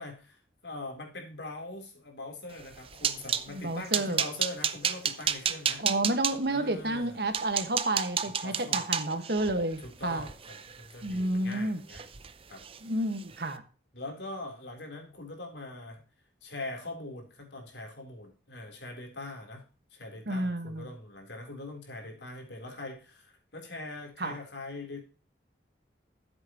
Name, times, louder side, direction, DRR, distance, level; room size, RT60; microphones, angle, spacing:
voice 1, 0.0-5.8 6.5-7.2 8.4-8.8 9.8-12.1 12.5-12.6 13.9-16.1 16.4-19.6 19.9-25.0, left 2 dB, 80° left, 2 dB, 3.7 m, -42 dB
sound 1, 2.6-3.5 3.9-6.3 6.9-7.0 7.3-11.5 11.9-12.3 12.6-12.8 13.2-13.3, right 8 dB, 30° right, 0.6 m, -31 dB
voice 2, 3.5-4.2 5.8-10.3 11.0-11.8 12.8-13.6 20.3-20.9 24.2-24.4, right 1 dB, 65° right, 7 dB, 1.6 m, -30 dB
13.0 x 8.0 x 3.0 m, 0.34 s
head